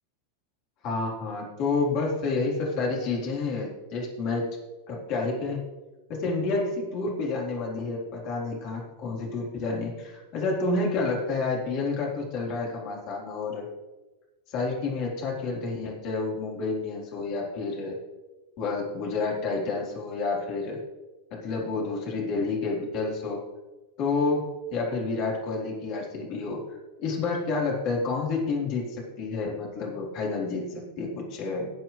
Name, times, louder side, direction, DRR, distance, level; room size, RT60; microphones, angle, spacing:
voice 1, 0.8-4.5 4.9-5.6 6.1-13.6 14.5-18.0 18.6-20.8 21.3-23.4 24.0-26.6 27.0-31.7, left 3 dB, 40° left, -3 dB, 4.1 m, -29 dB
19.0 x 7.7 x 3.4 m, 1.2 s
figure-of-eight pair, 90°, 0 cm